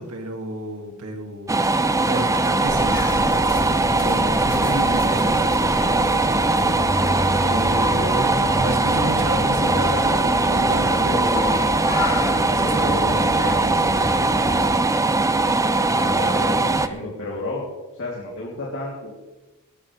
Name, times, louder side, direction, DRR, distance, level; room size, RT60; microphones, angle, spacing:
voice 1, 0.0-1.7 2.1-5.8 7.4-11.5 12.2-14.0, right 1 dB, 80° right, 3 dB, 2.4 m, -31 dB
sound 1, 1.5-16.9, right 2 dB, 15° right, 0.6 m, -20 dB
sound 2, 2.7-14.8, left 1 dB, 45° left, 2.7 m, -29 dB
voice 2, 15.8-17.6 17.9-19.1, left 2 dB, 60° left, -5 dB, 3.0 m, -31 dB
18.5 x 14.5 x 3.3 m, 1.2 s
head